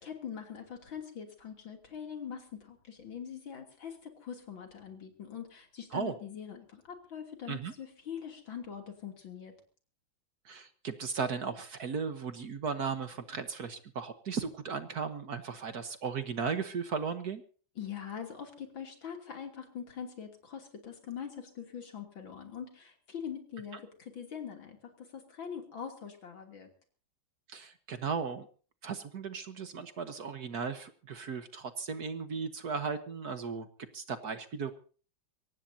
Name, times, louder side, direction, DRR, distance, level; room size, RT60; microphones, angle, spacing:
voice 1, 0.0-9.5 17.8-26.7, left 8 dB, 70° left, 4 dB, 3.7 m, -43 dB
voice 2, 10.4-17.4 23.7-23.8 27.5-28.5 28.8-33.7 33.9-34.7, right 5 dB, 55° right, 9 dB, 1.6 m, -36 dB
24.0 x 18.0 x 2.8 m, 0.40 s
omnidirectional pair, 2.2 m